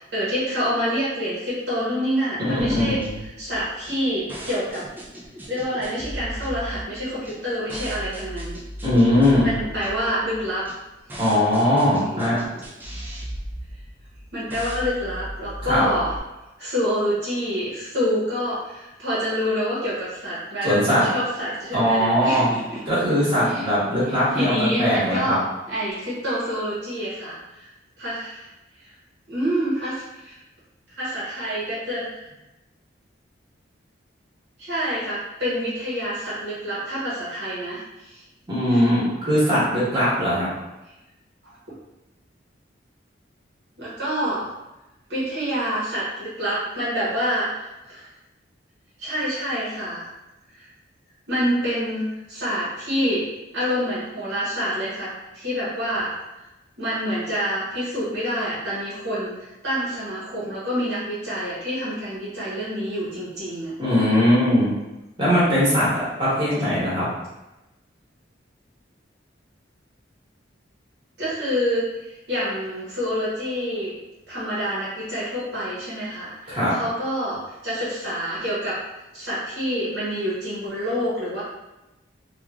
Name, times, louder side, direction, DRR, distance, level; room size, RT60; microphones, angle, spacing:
voice 1, 0.0-3.0 3.4-4.9 5.5-8.6 9.4-10.7 11.9-12.4 14.3-16.2 16.6-22.8 23.5-23.7 24.1-27.7 28.0-28.5 29.3-30.4 31.0-32.2 34.6-38.2 38.7-38.8 41.4-41.5 43.8-44.5 45.1-48.1 49.0-50.1 51.3-53.2 53.5-56.1 56.8-63.7 71.2-73.9 74.3-78.8 79.1-81.4, equal, 60° right, -9 dB, 0.8 m, -27 dB
voice 2, 2.5-3.1 8.8-9.5 11.2-12.4 15.6-15.8 20.6-21.0 21.7-22.5 22.8-25.4 38.5-40.5 63.8-64.7 65.2-67.1 76.5-76.7, equal, 25° right, -9 dB, 1.1 m, -20 dB
sound 1, 2.6-16.2, equal, 10° right, 0.3 m, -37 dB
3.0 x 2.2 x 2.3 m, 0.98 s
head